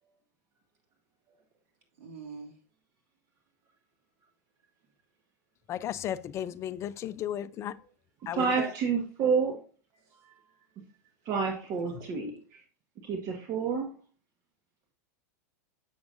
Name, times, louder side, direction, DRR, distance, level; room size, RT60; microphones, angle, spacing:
voice 1, 2.0-2.5 7.8-7.9 8.2-8.7 10.1-10.7 11.9-12.2 12.5-12.7, right 3 dB, 60° right, 3.1 m, -44 dB
voice 2, 5.7-7.8 8.3-8.5, left 11 dB, 30° left, 0.4 m, -34 dB
voice 3, 8.3-9.6 11.2-12.3 13.0-13.9, right 5 dB, 40° right, 1.3 m, -28 dB
7.1 x 6.8 x 2.5 m
supercardioid pair, 125°, 9 cm